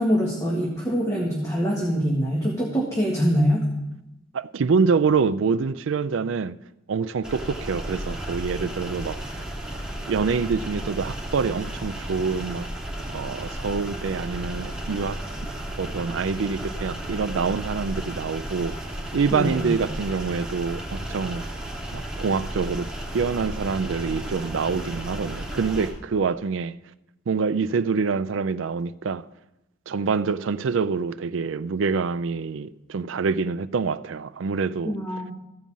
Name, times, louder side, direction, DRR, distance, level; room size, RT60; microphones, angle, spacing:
voice 1, 0.0-3.7 19.3-19.6 34.8-35.3, equal, 15° left, 1.6 m, -24 dB
voice 2, 4.3-6.6 6.9-9.5 10.1-12.7 13.1-15.2 15.8-18.8 19.1-21.5 21.9-26.8 27.3-29.2 29.9-34.9, right 5 dB, 75° right, 0.4 m, -26 dB
sound 1, 7.2-25.9, right 1 dB, 5° right, 2.2 m, -34 dB
14.5 x 5.4 x 7.4 m
head